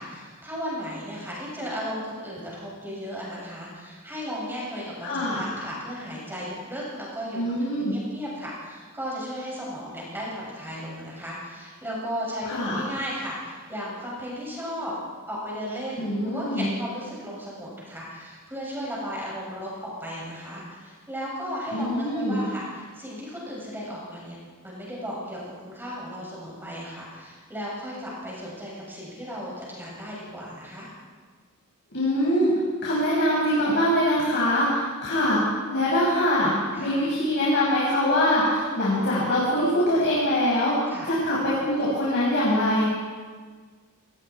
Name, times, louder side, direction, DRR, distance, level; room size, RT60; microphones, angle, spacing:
voice 1, 0.0-7.4 7.7-14.9 15.3-24.4 24.6-30.9 36.7-37.0 38.5-38.8 40.9-41.1, equal, 10° right, -6 dB, 7.6 m, -35 dB
voice 2, 5.0-5.5 7.4-7.9 12.5-12.8 16.0-16.7 21.7-22.4 31.9-32.5 32.8-35.4 35.7-40.8 41.0-42.9, left 1 dB, 50° left, -6 dB, 6.4 m, -23 dB
29.0 x 19.5 x 4.8 m, 1.5 s
head